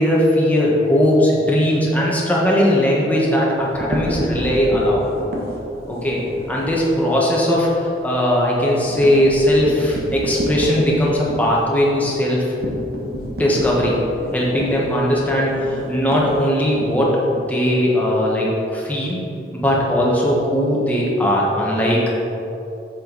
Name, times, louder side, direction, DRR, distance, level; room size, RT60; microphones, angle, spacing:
voice 1, 0.0-5.0 5.9-12.7 13.4-14.0 14.3-19.2 19.5-22.2, equal, 10° left, -5 dB, 1.3 m, -18 dB
sound 1, 3.6-6.8 7.2-7.3 7.6-7.7 8.1-16.9, equal, 55° right, 1.3 m, -30 dB
7.8 x 7.7 x 4.0 m, 3.0 s
head